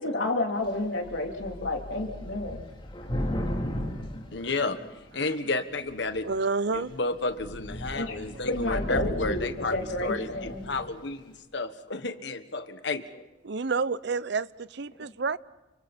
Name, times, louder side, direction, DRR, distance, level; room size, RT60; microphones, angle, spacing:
voice 1, 0.0-2.7 7.9-8.2 8.5-10.7 15.0-15.1, left 2 dB, 80° left, 3.4 m, -30 dB
Thunder / Rain, 0.6-0.8 1.0-5.2 5.9-6.3 6.7-6.9 7.2-10.9, equal, 25° left, 3.4 m, -35 dB
voice 2, 4.3-4.8 5.1-6.3 6.7-10.3 10.7-13.2, left 3 dB, 65° left, 1.5 m, -31 dB
voice 3, 6.2-6.9 10.7-10.8 13.4-15.4, right 4 dB, 60° right, 0.7 m, -29 dB
30.0 x 26.5 x 4.3 m
head